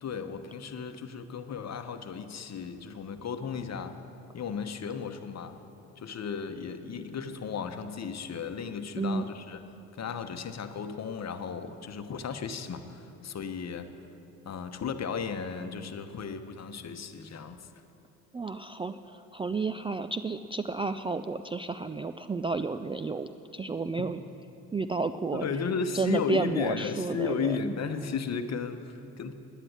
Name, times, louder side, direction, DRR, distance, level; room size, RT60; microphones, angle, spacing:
voice 1, 0.0-4.0 4.3-5.6 6.0-9.7 9.9-13.9 14.4-17.7 25.3-29.3, left 6 dB, 45° left, 9 dB, 1.1 m, -35 dB
voice 2, 18.3-24.2 24.7-25.5 25.9-27.6, right 4 dB, 15° right, 10 dB, 0.3 m, -31 dB
10.0 x 9.8 x 9.5 m, 2.8 s
supercardioid pair, 65°, 38 cm